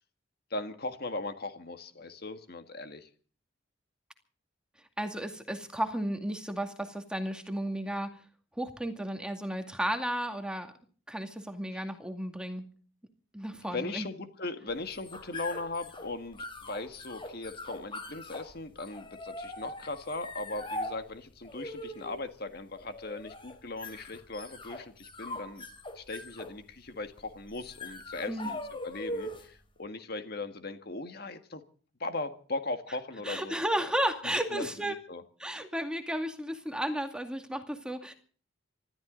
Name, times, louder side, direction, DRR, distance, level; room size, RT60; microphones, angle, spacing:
voice 1, 0.5-3.1 11.7-11.8 13.5-25.6 25.9-31.6 32.0-33.6 34.5-34.6 35.1-35.2, left 2 dB, 55° left, 8 dB, 1.8 m, -38 dB
voice 2, 5.0-8.2 8.6-10.7 11.1-12.6 13.3-14.1 28.3-28.5 33.2-35.0 35.4-38.1, right 1 dB, 5° right, 5 dB, 2.2 m, -33 dB
sound 1, 14.7-29.6, left 1 dB, 25° left, 3.2 m, -42 dB
26.5 x 13.5 x 3.9 m, 0.43 s
head